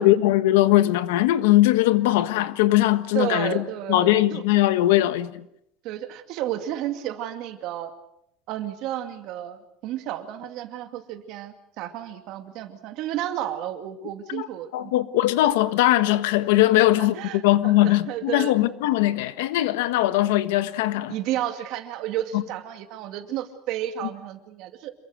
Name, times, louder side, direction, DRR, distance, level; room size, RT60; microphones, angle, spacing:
voice 1, 0.0-3.6 3.9-5.3 14.3-14.5 14.7-21.1 22.3-22.4, left 15 dB, 75° left, 1.5 m, -20 dB
voice 2, 3.1-4.4 5.8-7.9 8.5-14.7 16.7-18.5 21.1-24.9, right 11 dB, 40° right, 2.4 m, -32 dB
27.5 x 22.5 x 6.4 m
cardioid pair, 180°, 0 cm